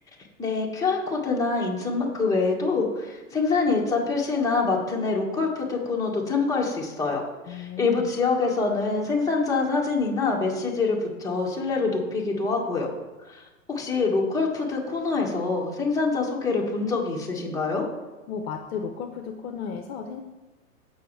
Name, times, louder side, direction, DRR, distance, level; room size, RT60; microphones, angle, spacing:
voice 1, 0.4-7.2 7.5-12.9 13.3-13.4 13.7-17.8, left 4 dB, 10° left, -3 dB, 1.7 m, -25 dB
voice 2, 7.5-8.1 18.3-20.2, left 6 dB, 45° left, 5 dB, 0.9 m, -34 dB
15.5 x 5.6 x 3.4 m, 1.2 s
figure-of-eight pair, 110°, 43 cm